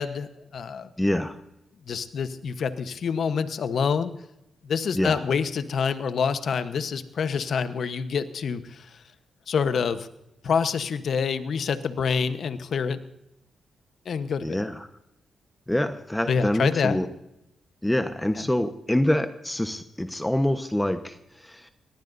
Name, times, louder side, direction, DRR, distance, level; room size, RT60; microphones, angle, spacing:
voice 1, 0.0-0.9 1.9-4.1 4.6-9.0 9.5-10.1 10.4-13.0 14.0-14.6 16.3-17.0, left 6 dB, 70° left, 11 dB, 1.1 m, -27 dB
voice 2, 1.0-1.4 4.9-5.2 14.4-14.9 15.7-17.1 17.8-21.7, left 1 dB, 10° left, 8 dB, 1.1 m, -26 dB
22.5 x 18.5 x 2.7 m, 0.84 s
supercardioid pair, 55°, 0 cm